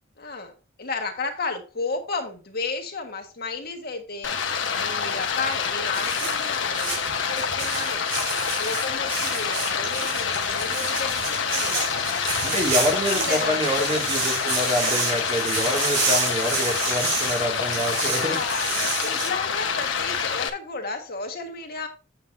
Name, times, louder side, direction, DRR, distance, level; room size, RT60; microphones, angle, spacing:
voice 1, 0.2-0.5 0.8-4.4 4.7-12.6 13.1-13.8 18.2-21.9, left 3 dB, 55° left, 1.6 m, -33 dB
Stream, 4.2-20.5, left 6 dB, 75° left, 1.3 m, -27 dB
sound 1, 5.9-19.3, right 4 dB, 70° right, 4.7 m, -30 dB
voice 2, 12.4-18.4, left 1 dB, 30° right, 2.4 m, -26 dB
8.9 x 7.6 x 2.7 m
head